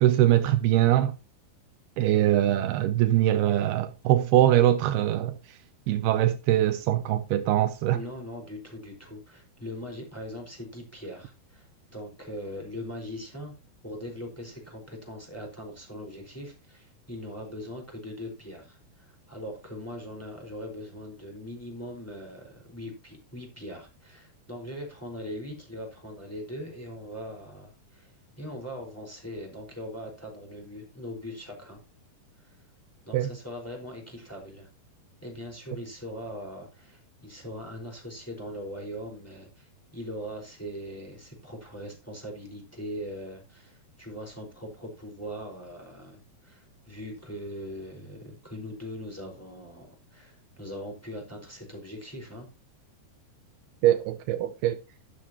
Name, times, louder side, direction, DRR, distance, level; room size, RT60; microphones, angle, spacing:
voice 1, 0.0-1.1 2.0-5.3 5.9-8.0 33.1-33.3 53.8-54.8, right 13 dB, 80° right, 2.6 m, -22 dB
voice 2, 7.9-13.5 13.8-31.8 32.4-32.6 33.1-34.7 35.2-52.5, equal, 5° left, 4.4 m, -40 dB
12.0 x 11.5 x 3.0 m
omnidirectional pair, 4.7 m